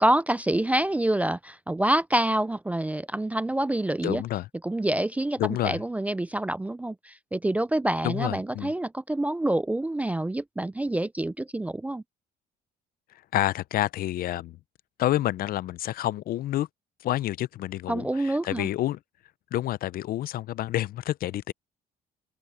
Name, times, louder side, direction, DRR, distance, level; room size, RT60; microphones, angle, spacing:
voice 1, 0.0-4.2 4.6-12.0 17.9-18.7, right 1 dB, 10° right, 0.3 m, -27 dB
voice 2, 4.0-4.5 5.4-5.8 8.0-8.7 13.3-14.6 15.0-16.7 17.0-19.0 19.5-21.5, left 14 dB, 60° left, 0.6 m, -28 dB
open air
cardioid pair, 110°, 17 cm